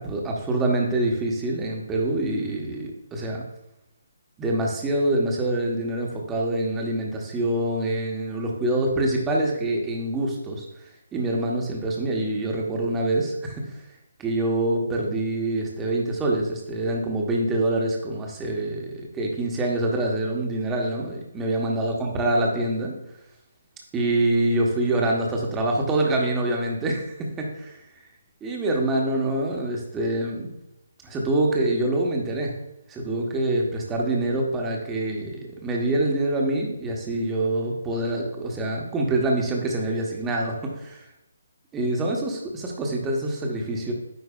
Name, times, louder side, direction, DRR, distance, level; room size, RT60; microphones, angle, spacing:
voice 1, 0.0-3.4 4.4-10.7 11.1-13.8 14.2-22.9 23.9-27.8 28.4-30.5 31.0-32.6 32.9-41.1 41.7-43.9, right 1 dB, 15° right, 0 dB, 1.1 m, -25 dB
9.5 x 4.5 x 2.4 m, 0.87 s
figure-of-eight pair, 145°, 0 cm